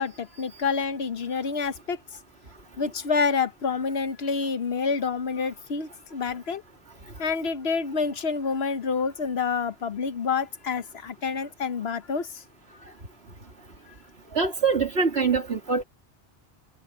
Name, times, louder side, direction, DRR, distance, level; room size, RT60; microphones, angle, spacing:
voice 1, 0.0-2.0 2.8-6.6 7.2-12.4, left 5 dB, 75° left, 1.3 m, -28 dB
voice 2, 14.3-15.8, right 5 dB, 80° right, 2.8 m, -24 dB
omnidirectional pair, 1.1 m